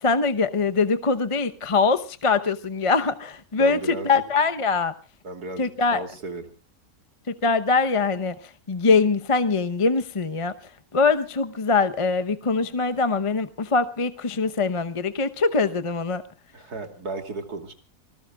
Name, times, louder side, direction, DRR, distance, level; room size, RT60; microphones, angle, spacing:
voice 1, 0.0-4.9 5.6-6.0 7.3-8.3 8.7-10.5 10.9-16.2, left 4 dB, 30° left, 11 dB, 0.7 m, -23 dB
voice 2, 3.6-4.2 5.2-6.5 16.5-17.7, right 2 dB, 85° right, 6 dB, 3.2 m, -35 dB
28.5 x 19.5 x 2.3 m, 0.35 s
omnidirectional pair, 1.6 m